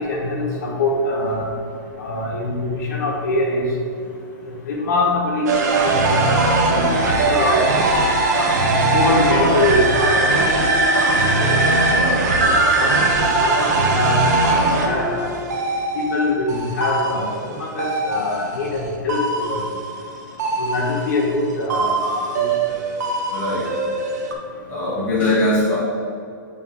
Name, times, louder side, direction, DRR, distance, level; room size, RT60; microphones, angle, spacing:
voice 1, 0.0-1.5 2.0-3.6 4.6-7.6 8.9-10.4 10.7-10.8 11.3-11.9 12.3-12.4 12.8-13.0 13.3-15.3 15.9-19.6 20.6-22.5, left 2 dB, 55° left, -2 dB, 1.6 m, -23 dB
sound 1, 5.5-18.8 19.1-21.4 21.7-24.3, right 2 dB, 55° right, 1.1 m, -20 dB
voice 2, 23.3-23.7 24.7-25.8, left 1 dB, 10° left, -8 dB, 1.4 m, -20 dB
9.5 x 3.2 x 5.2 m, 2.5 s
hypercardioid pair, 175°, 11 cm